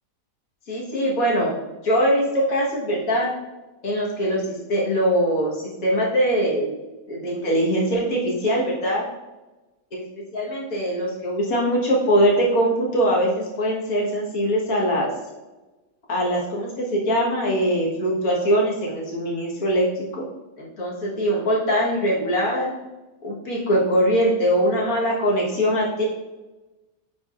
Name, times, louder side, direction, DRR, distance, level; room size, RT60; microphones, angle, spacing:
voice 1, 0.7-1.5 1.8-3.3 3.8-6.7 7.1-9.1 9.9-10.0 10.3-15.1 16.1-20.3 20.6-22.7 23.2-26.0, equal, 75° left, -4 dB, 1.9 m, -22 dB
9.2 x 4.8 x 2.5 m, 1.1 s
omnidirectional pair, 1.5 m